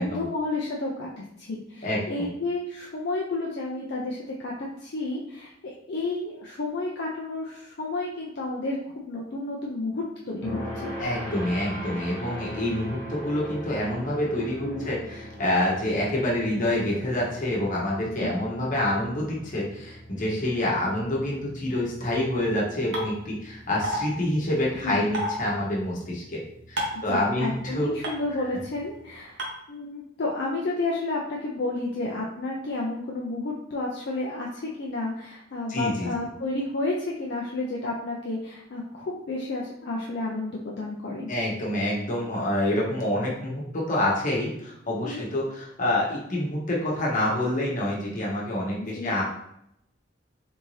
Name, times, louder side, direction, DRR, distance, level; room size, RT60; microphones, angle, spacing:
voice 1, 0.0-4.5 4.8-8.8 9.1-10.9 14.6-14.9 18.2-18.3 24.8-25.1 26.9-29.4 29.7-41.3 45.0-45.3 48.8-49.2, left 2 dB, 60° left, -2 dB, 0.5 m, -31 dB
voice 2, 1.8-2.3 11.0-26.4 26.7-27.9 35.7-36.1 41.3-43.6 43.9-49.2, left 1 dB, 45° left, -4 dB, 1.0 m, -27 dB
sound 1, 10.4-29.2, equal, 10° left, 1.4 m, -41 dB
sound 2, 22.9-23.0 23.8-24.0 25.1-25.3 26.8-27.0 28.0-28.1 29.4-29.5, right 1 dB, 65° right, 0.9 m, -27 dB
3.4 x 2.7 x 3.1 m, 0.78 s
head